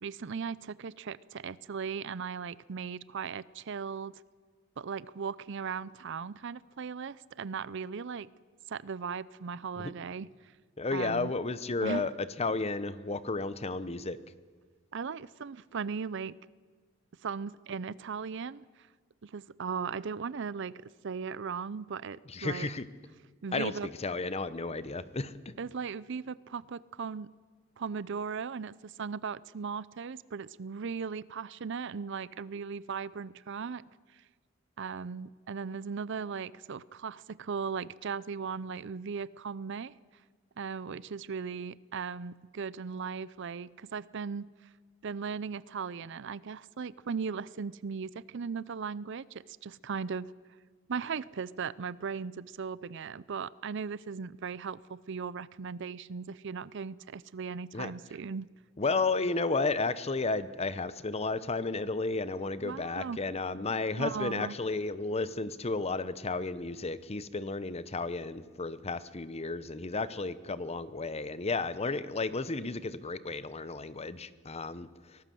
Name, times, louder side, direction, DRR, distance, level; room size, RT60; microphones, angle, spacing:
voice 1, 0.0-4.2 4.8-8.3 8.7-10.3 10.9-11.3 11.8-12.0 14.9-16.4 17.2-18.7 19.2-22.7 23.4-23.9 25.6-27.3 27.8-33.8 34.8-39.9 40.6-44.5 45.0-50.3 50.9-58.5 62.6-63.2 64.0-64.6, right 6 dB, 65° right, 20 dB, 0.5 m, -37 dB
voice 2, 10.8-12.1 12.4-14.2 22.3-22.8 23.5-23.7 24.0-25.5 57.7-57.9 58.8-75.2, left 3 dB, 30° left, 15 dB, 0.9 m, -33 dB
24.0 x 18.0 x 7.7 m, 1.5 s
head